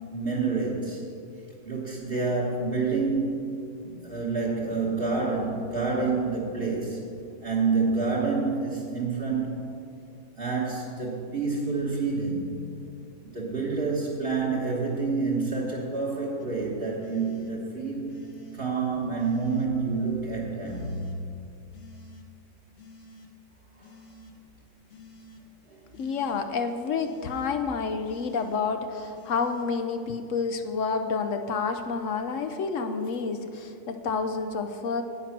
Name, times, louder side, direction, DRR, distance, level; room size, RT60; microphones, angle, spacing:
voice 1, 0.1-1.0 1.6-3.5 3.8-7.0 7.4-9.6 10.3-12.6 13.2-18.1 18.5-21.2 23.8-23.9 25.7-25.8, right 4 dB, 45° right, -3 dB, 1.6 m, -28 dB
sound 1, 16.4-16.5 17.0-17.5 18.1-18.6 19.2-19.7 20.6-21.2 21.7-22.2 22.8-23.3 23.8-24.3 24.9-25.4 25.9-26.4 27.0-27.5 28.1-28.6 29.1-29.7, left 2 dB, 55° left, 1.3 m, -48 dB
voice 2, 26.0-35.1, left 5 dB, 75° left, 7 dB, 1.0 m, -29 dB
10.0 x 9.1 x 5.9 m, 2.5 s
omnidirectional pair, 1.4 m